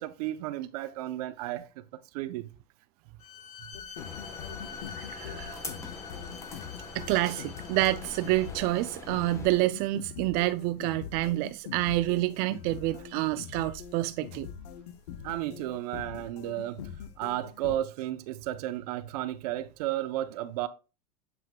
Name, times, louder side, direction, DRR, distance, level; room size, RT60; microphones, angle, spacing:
voice 1, 0.0-2.5 15.2-16.8 17.2-20.7, right 14 dB, 75° right, 0.7 m, -33 dB
Bowed string instrument, 3.2-8.7, left 7 dB, 35° left, 1.2 m, -46 dB
sound 1, 3.7-17.8, left 8 dB, 85° left, 0.8 m, -43 dB
sound 2, 4.0-9.5, left 3 dB, 15° left, 1.1 m, -44 dB
voice 2, 4.9-5.7 6.9-14.5, right 17 dB, 50° right, 0.4 m, -28 dB
7.7 x 6.0 x 2.3 m
supercardioid pair, 135°, 20 cm